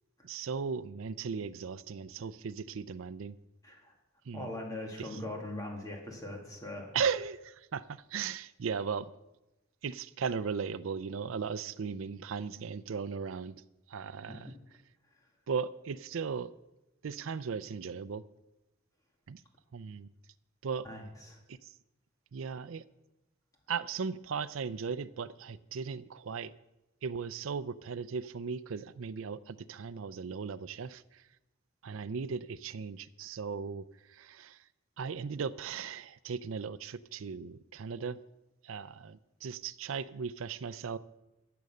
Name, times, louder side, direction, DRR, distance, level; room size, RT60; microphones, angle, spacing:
voice 1, 0.2-3.4 4.3-4.5 5.0-5.2 6.9-9.1 9.8-13.6 13.9-14.5 15.5-16.5 17.0-18.2 19.3-19.4 19.7-20.1 20.6-20.9 21.5-21.7 22.3-22.8 23.7-26.5 27.0-31.2 31.8-34.6 35.0-38.2 38.6-41.0, right 6 dB, 85° right, 16 dB, 0.5 m, -37 dB
voice 2, 4.3-6.9 14.3-14.4 20.8-21.4, left 1 dB, 20° left, 0 dB, 2.3 m, -41 dB
14.0 x 6.9 x 6.6 m, 0.97 s
head